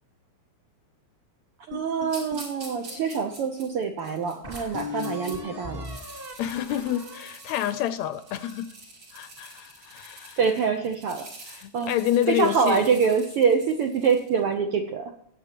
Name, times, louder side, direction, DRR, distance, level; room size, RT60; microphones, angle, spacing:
sound 1, 1.7-3.3 3.8-3.9 4.4-8.6, left 4 dB, 20° right, 2.1 m, -39 dB
voice 1, 1.7-5.9 10.4-11.3 11.7-11.9 12.3-15.1, right 6 dB, 75° right, 5 dB, 1.3 m, -25 dB
sound 2, 2.1-5.4 5.7-14.4, right 2 dB, 45° right, 4.6 m, -46 dB
voice 2, 6.4-8.7 9.1-10.4 11.5-12.9, left 11 dB, 80° left, 12 dB, 1.7 m, -28 dB
19.0 x 8.1 x 2.9 m, 0.72 s
omnidirectional pair, 3.5 m